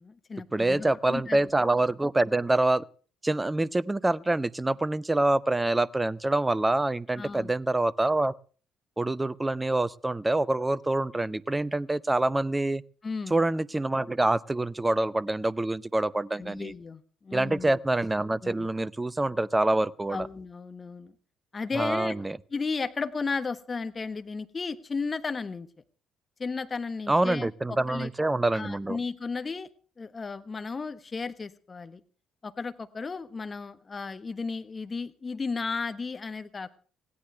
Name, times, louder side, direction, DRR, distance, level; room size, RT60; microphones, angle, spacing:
voice 1, 0.0-1.5 7.2-7.5 13.0-13.4 16.4-17.7 18.4-18.5 20.1-21.1 21.5-22.1 22.5-25.7 26.4-28.1 28.5-29.7 30.0-32.0 32.4-36.7, left 4 dB, 30° left, 1.3 m, -34 dB
voice 2, 0.5-2.8 3.2-8.3 9.0-12.8 13.3-16.7 17.3-20.3 21.7-22.4 27.1-29.0, right 2 dB, 15° right, 0.7 m, -26 dB
19.5 x 17.0 x 3.4 m
figure-of-eight pair, 50°, 0 cm